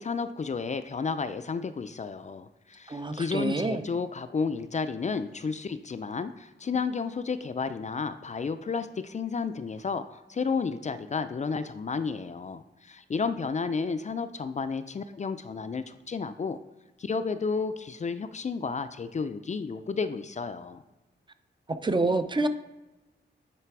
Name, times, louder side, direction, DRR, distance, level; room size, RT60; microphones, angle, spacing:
voice 1, 0.0-16.6 17.0-20.8, left 5 dB, 35° left, 10 dB, 0.4 m, -32 dB
voice 2, 2.9-3.8 21.7-22.5, right 2 dB, 25° right, 9 dB, 0.5 m, -27 dB
9.1 x 3.3 x 4.7 m, 1.1 s
wide cardioid pair, 85°, 20 cm